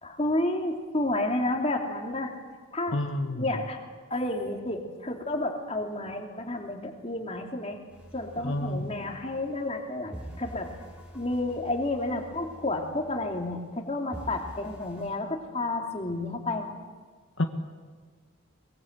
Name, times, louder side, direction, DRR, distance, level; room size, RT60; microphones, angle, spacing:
voice 1, 0.0-2.3 2.7-3.0 3.3-3.8 4.1-7.8 8.1-10.7 11.1-16.7, left 2 dB, 30° left, 2 dB, 2.9 m, -31 dB
voice 2, 2.9-3.4 8.4-8.8 17.4-17.5, left 1 dB, 70° left, 5 dB, 1.5 m, -28 dB
sound 1, 7.9-9.8 10.1-13.8 14.1-15.1, equal, 5° right, 5.5 m, -46 dB
22.5 x 22.0 x 8.0 m, 1.5 s
head